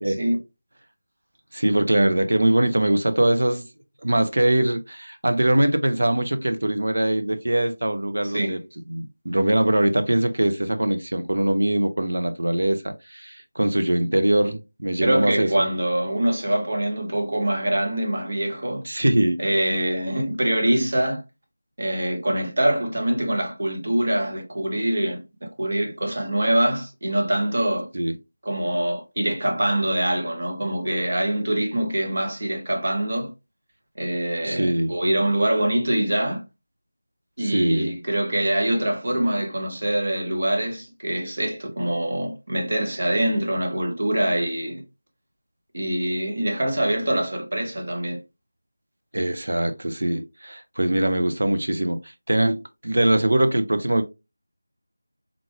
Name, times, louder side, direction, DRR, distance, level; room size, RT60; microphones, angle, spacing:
voice 1, 0.0-0.4 8.2-8.6 15.0-18.8 19.4-21.2 21.8-27.9 28.4-33.3 34.0-36.4 37.4-44.8 45.7-48.2, right 1 dB, 45° right, 1.1 m, -24 dB
voice 2, 1.5-3.6 4.0-8.6 8.9-15.7 18.8-19.4 27.9-28.2 34.4-34.9 37.4-37.9 49.1-54.0, right 1 dB, 70° right, 0.6 m, -22 dB
3.8 x 3.1 x 2.3 m
figure-of-eight pair, 175°, 0 cm